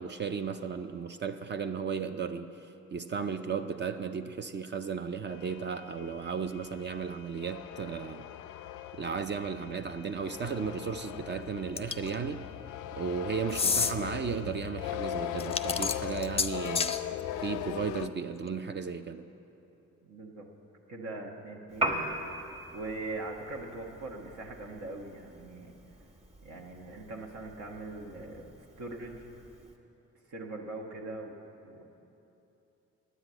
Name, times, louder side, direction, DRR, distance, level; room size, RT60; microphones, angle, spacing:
voice 1, 0.0-8.2 8.9-12.5 12.9-16.9 17.4-19.2, right 6 dB, 35° right, 8 dB, 0.4 m, -35 dB
sound 1, 5.3-18.1, left 11 dB, 85° left, 0.5 m, -39 dB
sound 2, 11.8-12.2 13.5-13.9 15.4-17.0, left 5 dB, 20° left, 0.5 m, -29 dB
voice 2, 20.0-20.5 20.9-22.0 22.7-25.7 26.4-29.3 30.3-31.4 31.6-31.8, right 2 dB, 70° right, 0 dB, 1.3 m, -41 dB
Piano, 21.7-29.8, right 2 dB, 20° right, 1.4 m, -40 dB
9.7 x 8.0 x 8.9 m, 2.9 s
cardioid pair, 90°, 30 cm